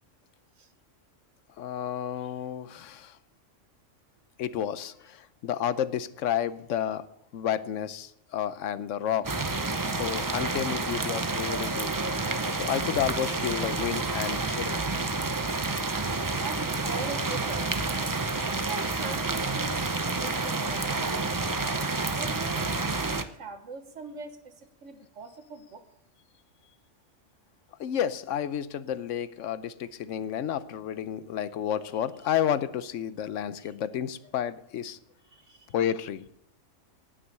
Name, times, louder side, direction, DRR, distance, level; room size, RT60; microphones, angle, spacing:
voice 1, 1.6-3.2 4.4-7.0 7.3-9.3 9.7-12.0 12.5-14.8 27.8-35.0 35.7-36.2, left 9 dB, 80° left, 15 dB, 1.0 m, -31 dB
sound 1, 9.2-23.2, right 3 dB, 25° right, 0.5 m, -29 dB
voice 2, 16.3-18.1 18.7-21.3 21.8-25.8 33.6-33.7 35.3-35.7, right 5 dB, 75° right, 8 dB, 1.6 m, -42 dB
18.0 x 6.3 x 6.7 m, 0.76 s
omnidirectional pair, 1.3 m